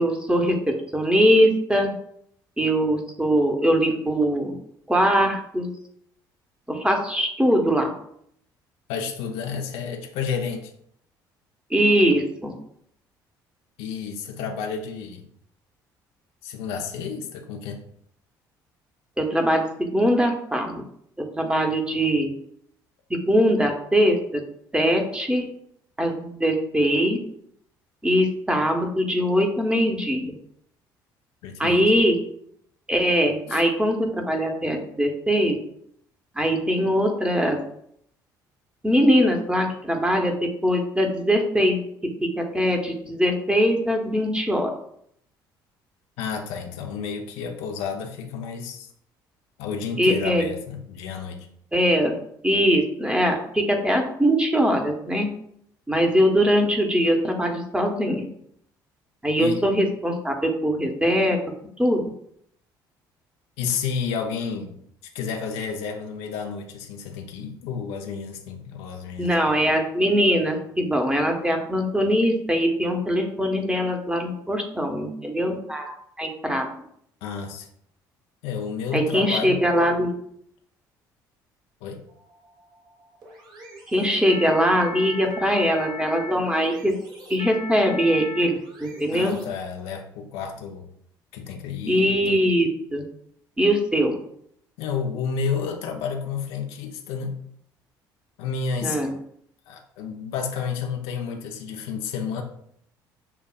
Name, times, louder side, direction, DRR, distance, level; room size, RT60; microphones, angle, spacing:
voice 1, 0.0-1.9 2.6-4.6 4.9-5.7 6.7-7.9 11.7-12.5 19.2-20.8 21.2-22.3 23.1-24.4 24.7-25.5 26.0-27.2 28.0-30.3 31.6-32.2 32.9-35.6 36.3-37.6 38.8-41.8 42.2-44.7 50.0-50.5 51.7-52.1 52.4-55.3 55.9-58.3 59.2-61.4 61.8-62.1 69.2-76.7 78.9-80.1 83.9-86.9 87.3-89.4 91.9-93.0 93.6-94.2 98.8-99.1, equal, 10° right, 3 dB, 1.0 m, -22 dB
voice 2, 8.9-10.7 13.8-15.3 16.4-17.8 31.4-31.9 33.5-33.6 46.2-48.9 49.6-51.5 59.4-59.6 63.6-64.7 65.1-69.5 77.2-77.7 78.4-79.6 81.8-82.0 89.1-90.9 91.3-92.4 94.8-97.4 98.4-99.0 99.7-102.4, left 6 dB, 70° left, 3 dB, 0.6 m, -31 dB
sound 1, 82.1-89.8, left 3 dB, 50° right, 1.2 m, -39 dB
6.7 x 2.3 x 2.3 m, 0.69 s
hypercardioid pair, 60°, 10 cm